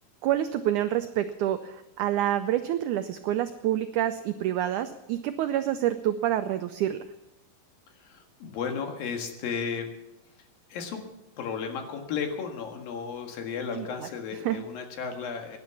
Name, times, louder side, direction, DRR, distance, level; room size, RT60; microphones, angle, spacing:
voice 1, 0.2-7.0 13.8-13.9 14.4-14.6, right 12 dB, 85° right, 9 dB, 1.7 m, -27 dB
voice 2, 7.9-9.9 10.7-11.1 11.4-15.6, left 6 dB, 75° left, 4 dB, 3.5 m, -34 dB
17.5 x 10.5 x 7.0 m, 0.92 s
omnidirectional pair, 4.2 m